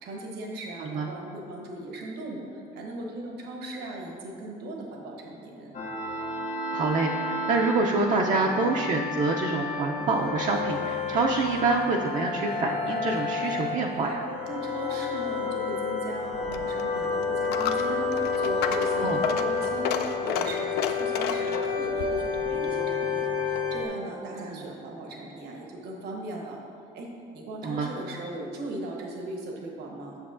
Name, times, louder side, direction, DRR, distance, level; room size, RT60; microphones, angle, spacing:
voice 1, 0.0-5.7 14.4-20.0 20.2-26.6 26.9-30.2, right 1 dB, 80° right, 0 dB, 1.0 m, -38 dB
sound 1, 5.7-23.9, left 4 dB, 50° left, 1.3 m, -30 dB
voice 2, 6.7-14.3 19.0-19.2 24.4-24.5 27.6-27.9, right 3 dB, 50° right, 0 dB, 0.4 m, -26 dB
Coin (dropping), 16.3-23.8, left 7 dB, 75° left, 0.4 m, -34 dB
8.0 x 6.4 x 2.5 m, 2.5 s
cardioid pair, 110°, 17 cm